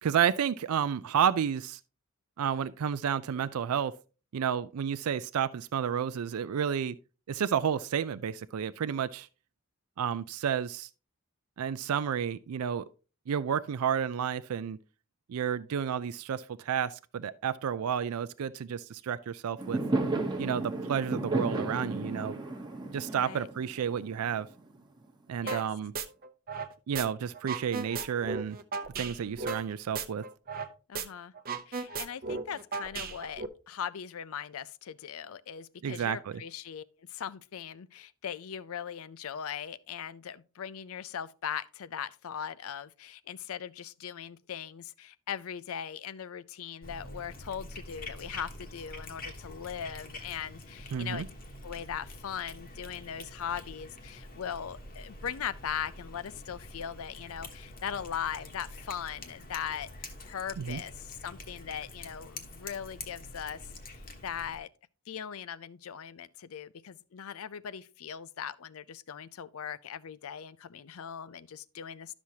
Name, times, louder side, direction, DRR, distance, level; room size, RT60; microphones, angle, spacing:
voice 1, 0.0-1.8 2.4-3.9 4.3-7.0 7.3-9.3 10.0-10.9 11.6-12.8 13.3-14.8 15.3-19.8 20.4-22.4 22.9-24.5 25.3-25.9 26.9-28.6 29.0-30.2 35.8-36.2 50.9-51.3 60.6-60.8, right 8 dB, 80° right, 0.4 m, -31 dB
Fireworks, 19.6-24.8, right 2 dB, 20° right, 0.9 m, -33 dB
voice 2, 23.1-23.5 25.4-25.7 30.9-31.3 31.7-51.2 51.6-64.7 65.1-72.1, left 8 dB, 70° left, 0.5 m, -39 dB
sound 1, 25.5-25.7 25.9-27.1 27.3-30.7 30.9-31.1 31.4-33.5, right 4 dB, 45° right, 0.7 m, -35 dB
Cat, 46.8-64.6, left 2 dB, 40° left, 1.2 m, -46 dB
11.5 x 6.2 x 2.8 m
head